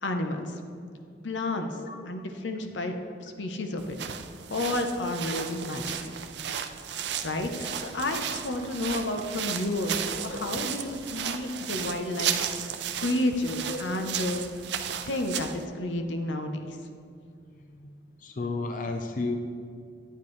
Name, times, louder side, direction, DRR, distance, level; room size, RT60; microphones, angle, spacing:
voice 1, 0.0-0.4 1.2-1.8 2.1-2.9 3.2-4.0 4.5-6.1 6.9-12.4 13.0-14.4 15.0-16.8, left 1 dB, 90° left, 5 dB, 0.8 m, -31 dB
sound 1, 3.8-15.6, right 9 dB, 70° right, 0.5 m, -34 dB
voice 2, 18.2-19.4, left 3 dB, 45° left, 4 dB, 0.5 m, -33 dB
9.6 x 9.0 x 3.2 m, 2.4 s
head